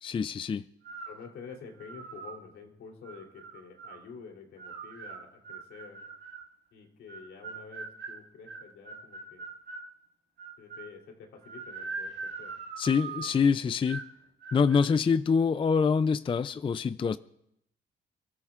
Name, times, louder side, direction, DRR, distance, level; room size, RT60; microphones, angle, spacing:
voice 1, 0.0-0.6 12.8-14.0 14.5-17.2, left 5 dB, 25° left, 14 dB, 0.4 m, -25 dB
sound 1, 0.8-1.2 1.8-2.4 3.0-4.0 4.6-6.5 7.1-9.9 10.4-11.0 11.4-13.4 13.9-14.1 14.4-14.8, right 4 dB, 60° right, 1.9 m, -42 dB
voice 2, 1.0-6.0 6.7-9.4 10.6-12.5 13.1-13.3, left 5 dB, 80° left, 1 dB, 3.3 m, -48 dB
29.0 x 13.5 x 2.5 m, 0.77 s
cardioid pair, 90°, 20 cm